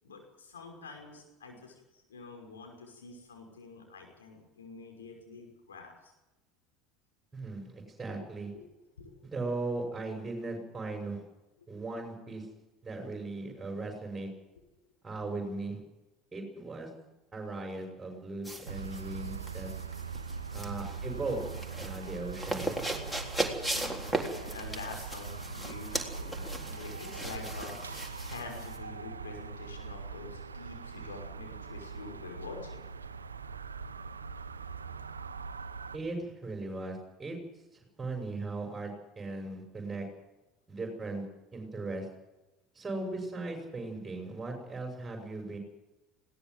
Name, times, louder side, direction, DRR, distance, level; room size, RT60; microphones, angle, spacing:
voice 1, 0.0-6.1 8.5-8.7 9.0-9.3 15.2-15.3 20.5-20.6 23.7-27.8 28.3-32.8, left 4 dB, 85° left, 2 dB, 5.9 m, -46 dB
voice 2, 7.3-8.5 9.2-11.2 11.7-12.5 12.8-14.3 15.0-15.8 16.3-16.9 17.3-19.7 20.5-21.4 21.8-22.7 35.9-37.4 37.7-40.1 40.7-41.3 41.5-42.1 42.7-45.6, right 2 dB, 15° right, 2 dB, 6.2 m, -38 dB
sound 1, 18.5-28.8, right 1 dB, 5° left, 3.7 m, -38 dB
sound 2, 18.7-36.0, right 5 dB, 90° right, 0.8 m, -42 dB
20.5 x 17.5 x 8.0 m, 1.0 s
hypercardioid pair, 70°, 0 cm